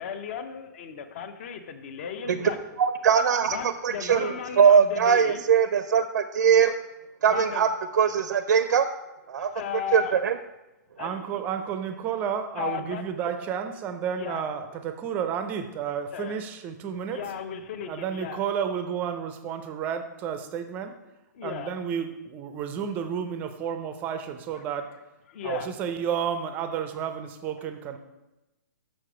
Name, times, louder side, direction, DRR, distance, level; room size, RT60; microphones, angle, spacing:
voice 1, 0.0-2.6 3.5-5.4 7.3-7.6 9.3-10.1 11.0-11.4 12.6-13.0 14.2-14.4 16.1-16.3 17.1-18.4 21.3-21.7 24.5-24.6 25.3-25.7 27.6-27.7, left 8 dB, 40° left, 9 dB, 0.6 m, -35 dB
voice 2, 2.8-3.6 3.8-6.8 7.2-7.7 7.9-8.9 9.3-9.5 9.9-10.4, right 7 dB, 70° right, 10 dB, 0.4 m, -21 dB
voice 3, 11.0-17.2 17.9-21.0 21.4-24.9 25.4-28.0, right 8 dB, 15° right, 8 dB, 0.4 m, -31 dB
6.6 x 6.1 x 4.9 m, 0.98 s
hypercardioid pair, 165°, 10 cm